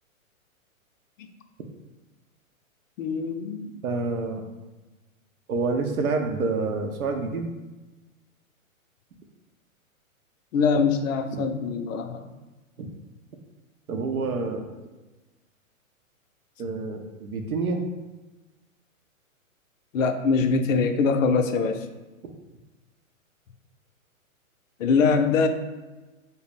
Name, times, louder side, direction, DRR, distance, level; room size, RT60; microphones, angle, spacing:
voice 1, 3.0-3.8 10.5-12.3 19.9-21.9 24.8-25.5, left 5 dB, 65° left, 7 dB, 0.5 m, -23 dB
voice 2, 3.8-4.4 5.5-7.5 11.3-11.4 12.8-12.9 13.9-14.7 16.6-17.8 22.2-22.3, right 3 dB, 90° right, 4 dB, 0.6 m, -28 dB
3.4 x 2.0 x 4.0 m, 1.1 s
hypercardioid pair, 125°, 42 cm